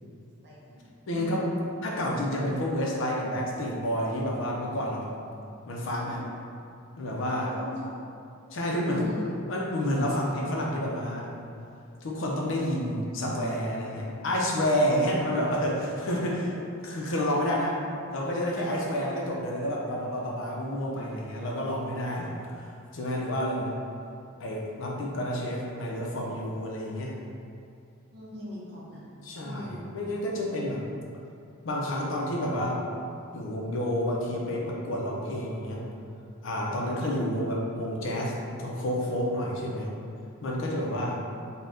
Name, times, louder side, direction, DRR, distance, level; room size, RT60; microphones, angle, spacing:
voice 1, 0.4-0.8 1.1-1.7 6.0-6.2 7.4-7.9 8.9-9.4 17.4-17.8 28.1-29.1 29.4-30.0, left 1 dB, 50° right, -6 dB, 0.6 m, -41 dB
voice 2, 1.1-1.5 1.8-5.1 5.7-6.2 7.0-7.5 8.5-9.2 9.5-11.3 12.0-16.6 16.8-17.8 18.1-22.7 22.9-23.7 24.4-27.2 29.2-30.8 31.6-32.8 33.3-35.8 36.4-39.9 40.4-41.2, equal, 60° left, -2 dB, 0.4 m, -29 dB
2.6 x 2.1 x 3.4 m, 2.5 s
head